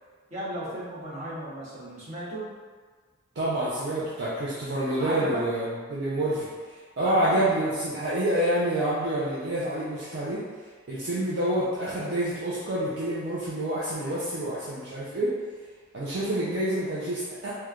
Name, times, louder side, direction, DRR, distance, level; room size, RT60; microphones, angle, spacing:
voice 1, 0.3-2.5 5.0-5.4 7.0-7.4, right 1 dB, 30° right, -9 dB, 0.9 m, -35 dB
voice 2, 3.4-6.5 7.0-10.4 10.9-15.3 15.9-17.5, right 1 dB, 50° right, -9 dB, 0.4 m, -27 dB
3.1 x 2.2 x 2.3 m, 1.5 s
head